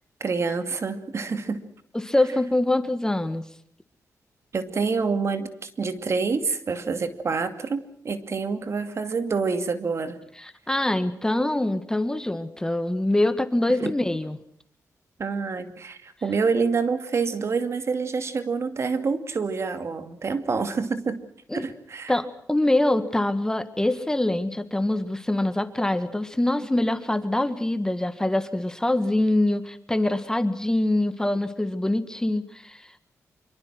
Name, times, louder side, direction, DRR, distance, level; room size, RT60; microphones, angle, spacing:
voice 1, 0.2-1.6 4.5-5.5 5.8-10.2 13.8-13.9 15.2-21.2 21.5-22.1, right 4 dB, 50° right, 10 dB, 2.5 m, -27 dB
voice 2, 1.9-3.4 10.4-14.4 21.5-21.7 22.1-33.0, left 1 dB, 10° left, 11 dB, 1.8 m, -24 dB
26.0 x 24.0 x 6.1 m, 0.65 s
cardioid pair, 95°, 6 cm